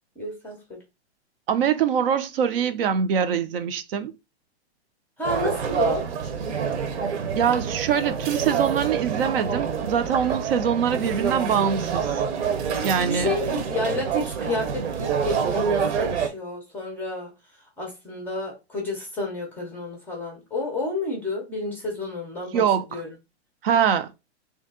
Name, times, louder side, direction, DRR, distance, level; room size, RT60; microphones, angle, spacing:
voice 1, 0.2-0.8 5.2-6.1 13.1-17.3 17.8-22.6 22.9-23.1, left 2 dB, 5° left, 0.5 m, -30 dB
voice 2, 1.5-4.1 7.3-12.1 12.8-13.3 22.5-23.0 23.6-24.1, right 8 dB, 60° right, 0.5 m, -23 dB
sound 1, 5.2-16.3, right 7 dB, 75° right, 0.9 m, -27 dB
3.1 x 2.7 x 3.6 m
hypercardioid pair, 160°, 34 cm